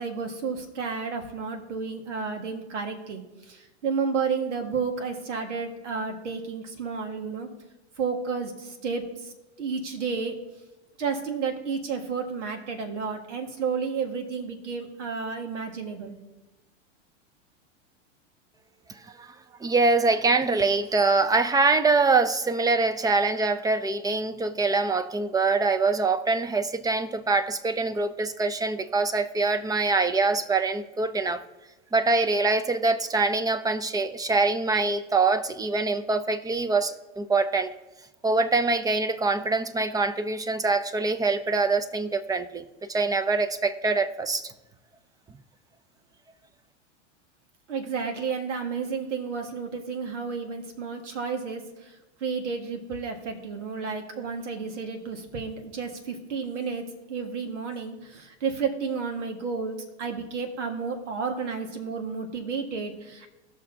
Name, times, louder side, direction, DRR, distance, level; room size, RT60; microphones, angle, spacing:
voice 1, 0.0-7.5 8.0-9.3 9.6-10.3 11.0-16.2 47.7-63.3, right 5 dB, 85° right, 1.7 m, -31 dB
voice 2, 19.6-31.4 31.9-37.7 38.2-42.6 42.9-44.5, right 3 dB, 10° right, 0.5 m, -24 dB
18.5 x 6.3 x 2.8 m
hypercardioid pair, 110°, 35 cm